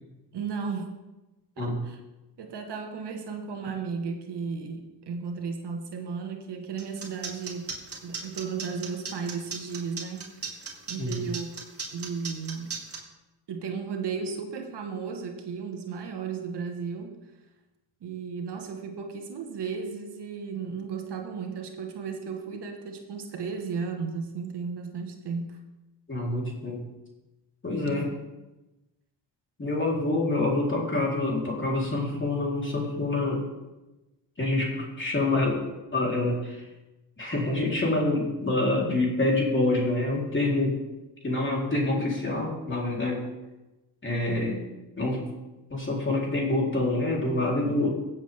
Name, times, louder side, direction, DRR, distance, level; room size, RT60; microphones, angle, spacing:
voice 1, 0.3-0.9 1.6-2.0 2.4-7.7 8.0-11.6 11.9-12.8 13.5-17.2 18.0-25.6 27.9-28.1, right 5 dB, 60° right, 4 dB, 1.6 m, -34 dB
sound 1, 6.8-13.0, right 5 dB, 30° right, 3.1 m, -36 dB
voice 2, 26.1-26.8 27.6-28.1 29.6-33.4 34.4-35.6 35.9-36.6 37.2-40.8 41.2-43.3 44.0-44.6 45.0-45.2 45.7-47.9, left 2 dB, 25° left, -3 dB, 3.9 m, -26 dB
16.0 x 7.5 x 3.6 m, 1.0 s
supercardioid pair, 70°, 46 cm